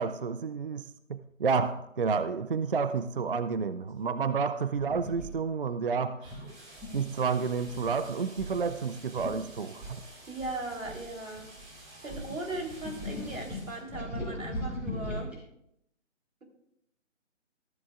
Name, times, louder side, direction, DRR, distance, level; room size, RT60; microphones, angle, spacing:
voice 1, 0.0-6.3 6.9-10.0, right 5 dB, 45° right, 12 dB, 0.4 m, -30 dB
sound 1, 3.9-4.1 4.4-4.7 6.2-13.8, right 1 dB, 20° right, 3.0 m, -51 dB
sound 2, 4.7-5.3 6.3-7.1 7.7-8.0 8.4-8.6 8.9-9.0 9.2-9.4 9.8-11.6 12.1-15.4, left 1 dB, 5° right, 4.2 m, -38 dB
voice 2, 10.3-11.5 12.0-15.4, right 2 dB, 90° right, 1 dB, 3.7 m, -38 dB
14.0 x 14.0 x 2.4 m, 0.77 s
figure-of-eight pair, 150°, 39 cm